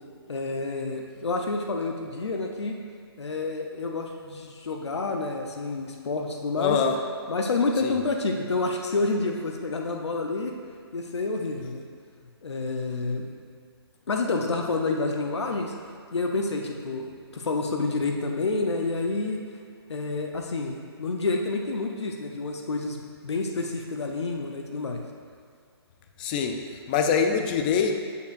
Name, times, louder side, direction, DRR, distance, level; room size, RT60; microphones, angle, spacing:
voice 1, 0.3-2.8 3.2-6.8 7.3-10.5 10.9-11.8 12.4-13.3 14.1-15.7 16.1-19.4 19.9-25.0, left 3 dB, 90° left, 2 dB, 0.7 m, -29 dB
voice 2, 6.6-7.0 7.8-8.0 26.2-28.0, left 6 dB, 20° left, 5 dB, 0.4 m, -24 dB
8.0 x 6.7 x 2.5 m, 2.2 s
hypercardioid pair, 155°, 14 cm